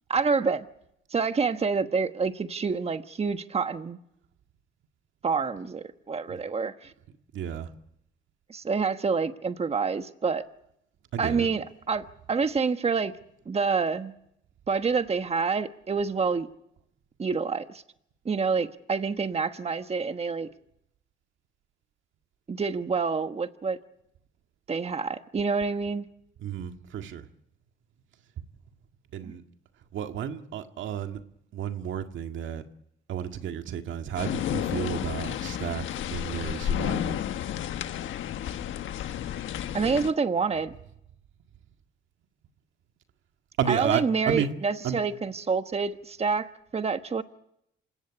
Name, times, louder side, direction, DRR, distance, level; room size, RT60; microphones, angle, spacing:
voice 1, 0.1-0.6 1.1-4.0 5.2-6.9 8.5-10.4 11.2-13.1 13.5-14.1 14.7-16.5 17.2-17.8 18.2-20.5 22.5-23.8 24.7-26.1 29.2-29.3 39.7-40.7 43.7-47.2, right 5 dB, 30° right, 1.2 m, -27 dB
voice 2, 7.3-7.7 11.1-11.5 26.4-27.2 29.1-29.4 29.9-31.2 31.5-32.6 33.1-35.8 36.1-37.2 43.6-44.5 44.8-45.0, right 9 dB, 75° right, 1.9 m, -32 dB
sound 1, 34.2-40.1, left 11 dB, 75° left, 1.4 m, -31 dB
27.5 x 17.0 x 9.9 m
cardioid pair, 90°, 20 cm